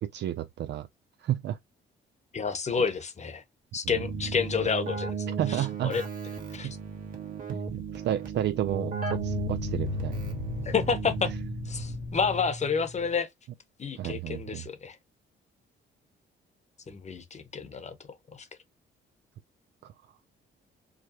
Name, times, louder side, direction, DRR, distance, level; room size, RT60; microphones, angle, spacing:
voice 1, 0.0-0.9 1.2-1.6 3.8-4.0 5.4-6.0 6.6-6.8 7.5-10.2 14.0-14.6 19.8-19.9, right 11 dB, 60° right, 0.4 m, -31 dB
voice 2, 2.3-3.4 3.7-6.0 6.5-6.8 10.6-11.3 11.7-13.3 13.8-15.0 16.9-17.9 18.3-18.5, left 5 dB, 35° left, 1.0 m, -30 dB
sound 1, 3.2-3.3 8.6-13.2, left 2 dB, 70° left, 1.0 m, -35 dB
Keyboard (musical), 3.9-11.8, right 5 dB, 45° right, 1.6 m, -36 dB
4.9 x 2.2 x 2.9 m
cardioid pair, 90°, 20 cm